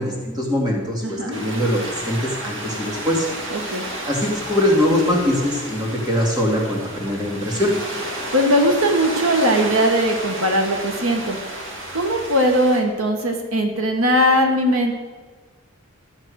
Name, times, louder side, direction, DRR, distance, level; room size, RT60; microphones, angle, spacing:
voice 1, 0.0-3.3 4.1-7.7, left 1 dB, 20° right, -1 dB, 2.4 m, -22 dB
voice 2, 1.0-1.4 3.5-3.8 8.3-11.4 11.9-15.0, equal, 85° right, 3 dB, 1.5 m, -19 dB
sound 1, 1.3-12.8, right 1 dB, 60° right, 2.3 m, -32 dB
13.0 x 7.4 x 6.5 m, 1.4 s
head